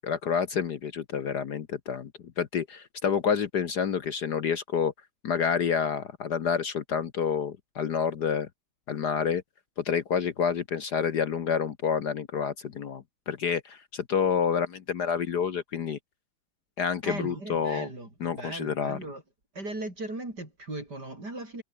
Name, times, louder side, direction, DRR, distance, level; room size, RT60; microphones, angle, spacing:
voice 1, 0.0-2.1 2.4-4.9 5.2-8.5 8.9-9.4 9.9-16.0 16.8-17.9 18.2-19.0, left 7 dB, 55° left, 1.6 m, -28 dB
voice 2, 17.0-19.2 19.5-21.6, right 2 dB, 50° right, 7.6 m, -38 dB
omnidirectional pair, 2.3 m